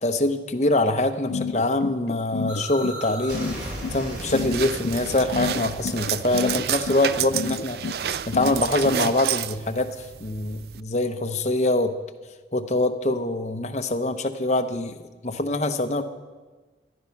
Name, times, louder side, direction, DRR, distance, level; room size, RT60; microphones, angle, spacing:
voice 1, 0.0-3.6 3.9-7.8 8.3-11.9 12.5-15.0 15.2-16.0, left 2 dB, 40° left, 6 dB, 0.9 m, -24 dB
sound 1, 1.3-8.9, left 5 dB, 85° left, 0.4 m, -30 dB
sound 2, 2.5-8.2, right 1 dB, 85° right, 4.0 m, -37 dB
sound 3, 3.4-10.8, right 9 dB, 60° right, 0.4 m, -31 dB
14.0 x 11.5 x 5.9 m, 1.3 s
head